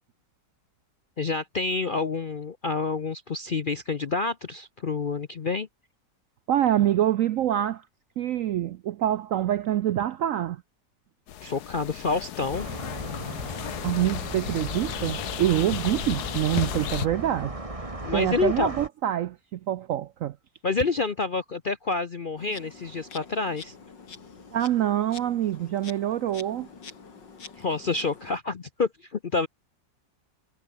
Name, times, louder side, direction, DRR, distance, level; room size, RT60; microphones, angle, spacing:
voice 1, 1.2-5.7 11.4-12.7 18.0-18.7 20.6-23.7 27.6-29.5, left 4 dB, 50° left, 0.6 m, -28 dB
voice 2, 6.5-7.8 8.2-10.6 13.8-17.5 18.1-20.4 24.5-26.7, right 12 dB, 70° right, 0.7 m, -26 dB
sound 1, 11.3-17.1, left 11 dB, 65° left, 1.3 m, -34 dB
sound 2, 12.5-18.9, right 2 dB, 20° right, 2.7 m, -37 dB
Insect, 22.4-28.4, left 5 dB, 85° left, 3.4 m, -46 dB
omnidirectional pair, 1.9 m